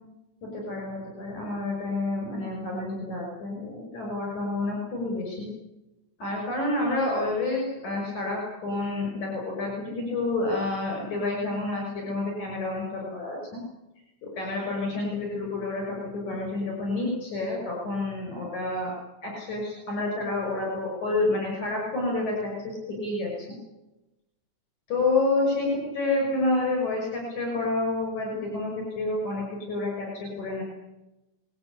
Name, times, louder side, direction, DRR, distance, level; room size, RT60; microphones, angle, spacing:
voice 1, 0.4-5.5 6.2-13.6 14.2-18.9 19.2-23.3 24.9-30.6, left 2 dB, 70° left, -1 dB, 7.5 m, -29 dB
26.0 x 20.0 x 8.8 m, 0.99 s
omnidirectional pair, 3.5 m